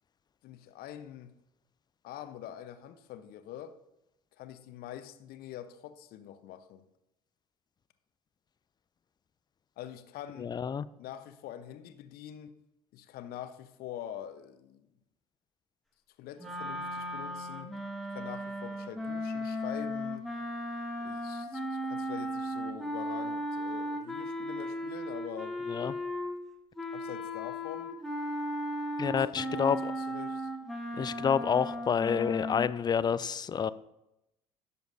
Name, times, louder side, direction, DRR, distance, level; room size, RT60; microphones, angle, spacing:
voice 1, 0.4-1.3 2.0-3.8 4.4-6.9 9.8-10.5 11.0-12.5 12.9-14.9 16.2-17.7 18.1-20.3 21.0-25.6 26.9-28.0 29.0-30.5, left 10 dB, 50° left, 0.9 m, -45 dB
voice 2, 10.4-10.9 25.7-25.9 29.0-29.9 31.0-33.7, left 7 dB, 20° left, 0.4 m, -29 dB
sound 1, 16.4-26.4 26.8-32.7, equal, ahead, 1.8 m, -36 dB
16.5 x 7.0 x 2.7 m
figure-of-eight pair, 60°, 19 cm